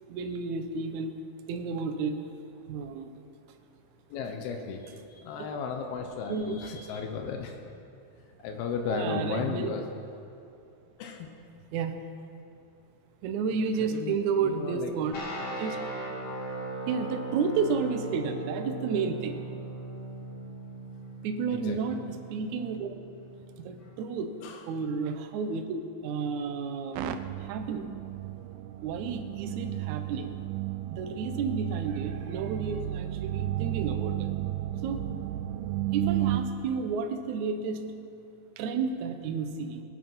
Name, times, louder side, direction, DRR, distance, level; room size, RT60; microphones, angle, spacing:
voice 1, 0.1-1.2 1.5-2.2 2.7-3.1 5.4-5.5 6.3-6.6 8.8-9.7 11.7-11.9 13.2-15.1 15.6-15.8 16.9-19.4 21.2-22.9 23.6-24.4 24.7-27.9 28.8-30.3 30.9-34.3 34.8-35.1 35.9-37.9 38.6-39.8, right 5 dB, 70° right, 6 dB, 1.8 m, -31 dB
voice 2, 4.1-7.7 8.4-9.9 11.0-11.4 13.8-14.9 21.5-21.8 24.4-24.7, left 5 dB, 85° left, 4 dB, 2.8 m, -35 dB
sound 1, 15.1-24.0, right 2 dB, 40° left, 1.6 m, -39 dB
sound 2, 26.9-36.4, right 14 dB, 90° right, 1.8 m, -33 dB
21.5 x 8.5 x 5.4 m, 2.6 s
omnidirectional pair, 4.3 m